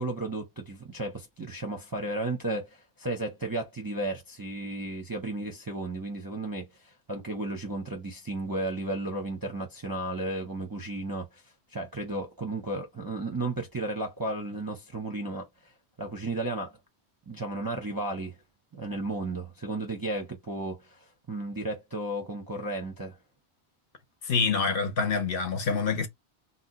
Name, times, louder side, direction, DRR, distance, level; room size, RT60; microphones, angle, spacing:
voice 1, 0.0-11.4 11.7-15.5 16.0-16.8 17.3-18.3 18.7-23.2, right 2 dB, 25° right, 0.5 m, -34 dB
voice 2, 24.2-26.1, left 5 dB, 60° left, 0.8 m, -26 dB
2.7 x 2.2 x 3.8 m
omnidirectional pair, 1.2 m